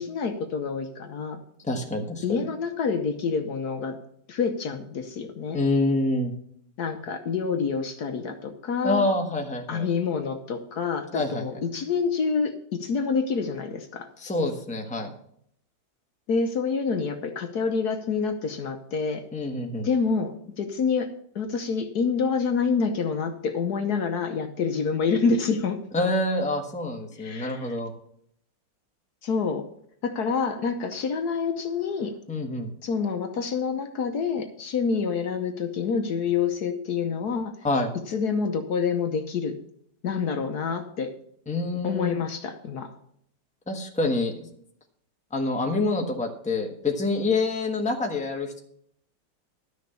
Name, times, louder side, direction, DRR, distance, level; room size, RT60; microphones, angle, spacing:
voice 1, 0.0-1.4 2.2-4.0 4.3-5.6 6.8-9.1 9.7-14.1 16.3-19.2 19.8-21.1 21.3-25.8 27.2-27.8 29.2-29.6 30.0-32.2 32.8-37.5 38.1-39.6 40.0-41.1 41.8-42.9, left 5 dB, 60° left, 7 dB, 1.4 m, -27 dB
voice 2, 1.6-2.2 5.5-6.3 8.8-9.9 11.1-11.4 14.2-15.1 19.3-19.9 25.9-27.9 32.3-32.7 37.6-37.9 41.5-42.2 43.7-44.5 45.3-48.6, left 2 dB, 5° left, 2 dB, 1.1 m, -26 dB
12.0 x 6.5 x 7.0 m, 0.67 s
omnidirectional pair, 2.0 m